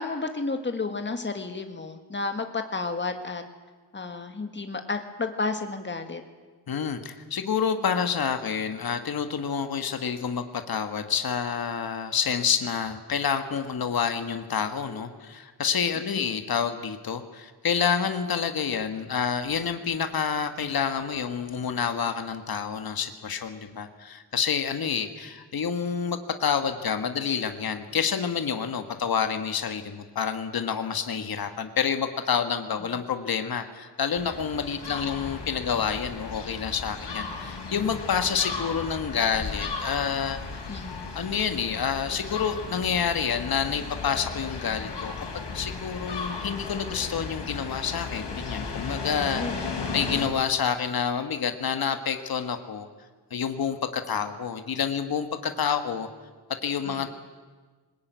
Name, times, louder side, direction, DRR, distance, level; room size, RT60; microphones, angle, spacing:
voice 1, 0.0-3.4 3.9-6.2 15.8-15.9 40.7-41.0 49.2-49.6 56.8-57.1, left 3 dB, 25° left, 7 dB, 1.7 m, -32 dB
voice 2, 6.7-40.7 41.1-45.1 45.5-52.9 53.3-56.1 56.6-57.1, left 7 dB, 55° left, 8 dB, 1.5 m, -28 dB
sound 1, 34.2-50.3, left 4 dB, 75° left, 4.6 m, -35 dB
21.5 x 19.5 x 9.3 m, 1.4 s
wide cardioid pair, 175°, 42 cm